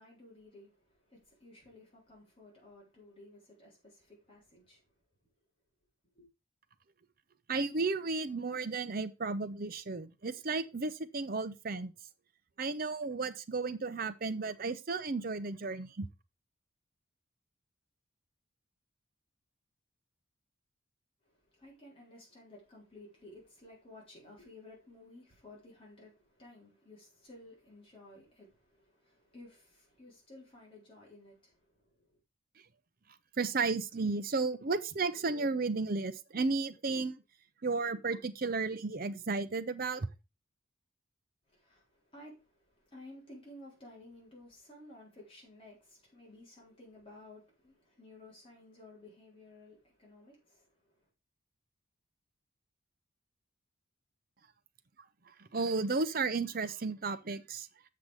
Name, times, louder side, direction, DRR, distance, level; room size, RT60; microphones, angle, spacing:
voice 1, 0.0-4.8 6.1-6.3 21.2-32.1 41.5-51.1, left 1 dB, 25° left, 3.7 m, -55 dB
voice 2, 7.5-11.9 12.6-16.1 33.4-37.2 37.6-40.1 55.4-57.7, right 4 dB, 45° right, 0.6 m, -33 dB
7.4 x 5.9 x 4.8 m
head